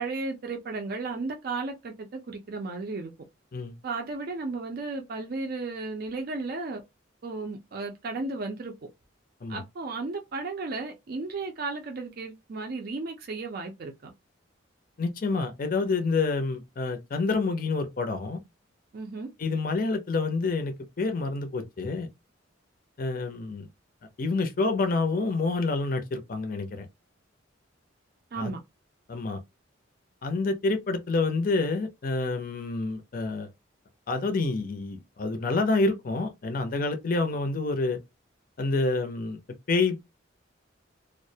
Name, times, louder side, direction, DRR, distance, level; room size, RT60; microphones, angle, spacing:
voice 1, 0.0-3.1 3.8-6.8 7.2-8.7 9.5-14.1 18.9-19.3 28.3-28.6, right 3 dB, 50° right, 0.4 m, -34 dB
voice 2, 15.0-18.4 19.4-22.1 23.0-23.7 24.2-26.9 28.4-28.5 29.1-29.4 30.2-33.5 34.1-38.0 38.6-39.4 39.7-40.0, left 3 dB, 45° left, 0.4 m, -28 dB
2.3 x 2.0 x 2.6 m
head